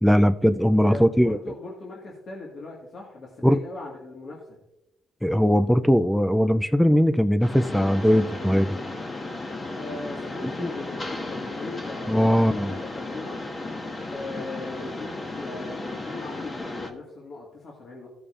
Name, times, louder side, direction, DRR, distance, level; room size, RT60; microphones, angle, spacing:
voice 1, 0.0-1.4 3.4-3.6 5.2-8.7 10.4-10.7 12.1-12.7, equal, ahead, 11 dB, 0.4 m, -20 dB
voice 2, 0.8-4.6 9.7-13.4 14.1-18.1, left 2 dB, 55° left, -2 dB, 1.7 m, -39 dB
Mechanisms, 7.4-16.9, left 2 dB, 30° left, 1.4 m, -34 dB
15.0 x 6.9 x 2.5 m, 0.92 s
cardioid pair, 90°, 0 cm